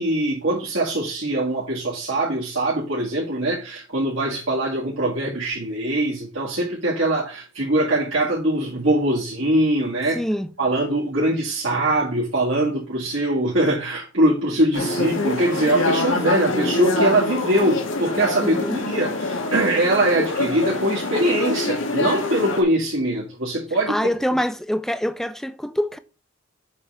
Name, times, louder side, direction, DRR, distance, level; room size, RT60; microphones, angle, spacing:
voice 1, 0.0-10.2 10.6-24.0, right 1 dB, 75° right, 2.0 m, -22 dB
voice 2, 10.1-10.5 18.4-18.8 23.9-26.0, equal, ahead, 0.4 m, -25 dB
sound 1, 14.7-22.6, left 2 dB, 80° left, 1.6 m, -25 dB
7.4 x 3.4 x 6.0 m
head